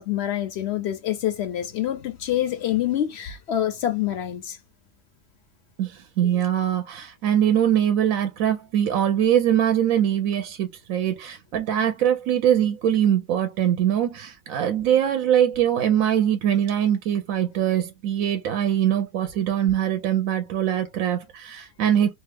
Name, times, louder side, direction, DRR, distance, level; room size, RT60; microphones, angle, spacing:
voice 1, 0.0-4.6 6.2-6.3, left 12 dB, 65° left, 0.7 m, -26 dB
voice 2, 5.8-22.2, right 10 dB, 75° right, 1.0 m, -22 dB
2.7 x 2.3 x 3.3 m
omnidirectional pair, 1.5 m